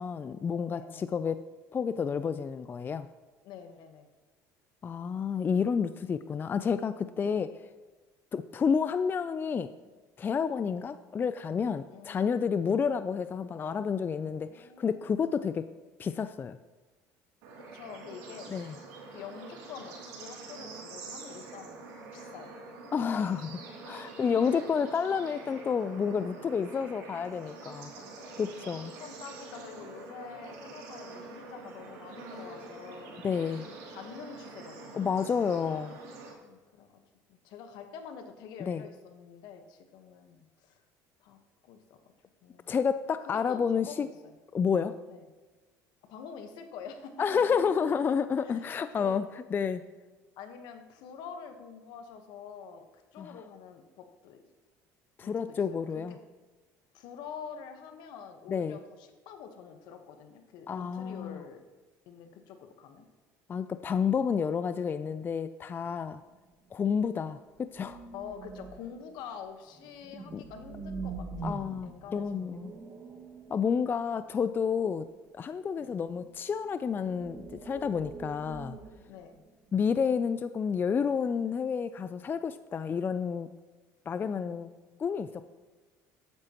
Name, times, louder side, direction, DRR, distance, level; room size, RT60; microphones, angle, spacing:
voice 1, 0.0-1.4 1.7-3.1 4.8-7.6 8.3-9.7 10.2-15.7 16.0-16.6 18.5-18.7 22.9-27.9 28.4-28.9 33.2-33.7 34.9-36.0 38.6-38.8 42.7-44.1 44.5-45.0 47.2-49.8 53.2-53.4 55.2-56.2 58.5-58.8 60.7-61.4 63.5-66.2 66.7-68.0 70.3-70.4 71.4-72.7 73.5-75.1 75.3-78.8 79.7-83.5 84.1-84.7 85.0-85.5, left 6 dB, 30° left, 12 dB, 0.3 m, -30 dB
voice 2, 0.7-1.1 3.4-4.1 10.6-10.8 11.9-12.7 14.2-15.2 17.5-18.5 19.1-21.8 22.1-22.5 24.0-24.3 27.9-33.2 33.6-35.2 36.4-37.0 37.3-40.8 41.2-41.4 41.6-42.0 42.4-42.7 43.0-44.3 45.1-45.3 46.1-47.7 48.4-49.2 50.4-52.9 53.1-54.4 55.2-56.2 56.9-61.6 62.1-63.1 68.1-71.5 71.8-72.6 75.8-75.9 79.1-79.4 84.3-85.0, left 7 dB, 70° left, 6 dB, 1.2 m, -47 dB
Bird / Insect / Frog, 17.4-36.3, right 3 dB, 85° right, 2.9 m, -46 dB
sound 1, 66.1-66.4 66.7-66.8 67.5-69.1 69.7-74.5 76.0-76.3 76.7-79.7, right 4 dB, 35° right, 2.0 m, -44 dB
13.5 x 9.6 x 3.0 m, 1.2 s
supercardioid pair, 100°, 7 cm